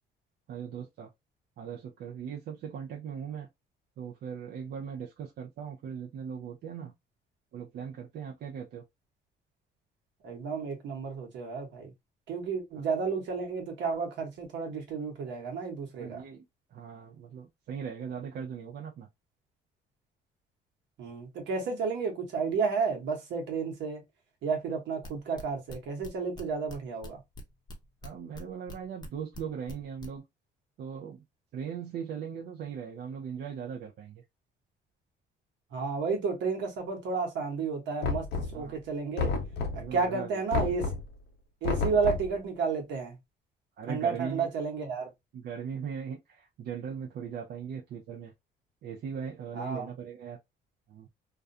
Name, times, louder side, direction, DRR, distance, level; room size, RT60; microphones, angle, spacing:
voice 1, 0.5-1.1 1.6-3.5 4.0-6.9 7.5-8.8 16.0-16.4 16.7-19.1 28.0-30.2 30.8-31.2 31.5-34.2 38.5-38.8 39.7-40.4 43.8-44.5 45.3-48.3 48.8-50.4 50.9-51.1, right 7 dB, 65° right, 0.5 m, -39 dB
voice 2, 10.2-11.9 12.3-16.2 21.0-24.0 24.4-27.2 35.7-39.3 39.7-40.9 41.6-43.2 43.9-45.1 49.5-49.9, right 5 dB, 80° right, 1.1 m, -32 dB
sound 1, 25.0-26.8 27.0-28.7 29.0-30.1, left 2 dB, 25° left, 0.7 m, -43 dB
Knock, 38.0-38.7 39.2-40.0 40.5-41.1 41.6-42.4, left 4 dB, 70° left, 0.7 m, -31 dB
2.4 x 2.3 x 2.6 m
cardioid pair, 105°, 18 cm